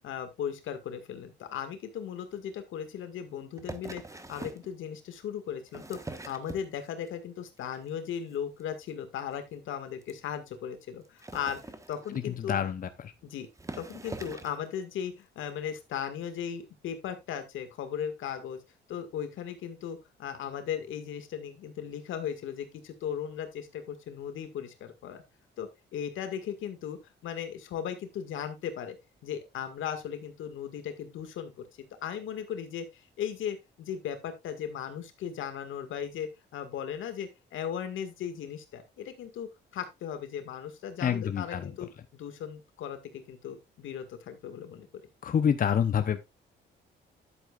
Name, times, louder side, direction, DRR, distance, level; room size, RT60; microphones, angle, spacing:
voice 1, 0.0-11.6 11.9-12.6 13.2-13.5 13.8-18.6 18.9-25.2 25.6-29.0 29.2-31.7 32.0-44.9, left 8 dB, 80° left, 1.9 m, -37 dB
sound 1, 3.6-4.7 5.5-7.1 7.5-7.9 8.2-8.3 8.6-8.7 8.9-9.0 9.3-9.4 10.0-10.1 11.1-12.4 13.1-13.2 13.6-14.6 15.4-15.5, right 2 dB, 15° right, 1.3 m, -43 dB
voice 2, 12.2-13.1 41.0-41.7 45.2-46.2, left 8 dB, 45° left, 0.8 m, -27 dB
11.0 x 8.4 x 2.5 m
cardioid pair, 90°, 20 cm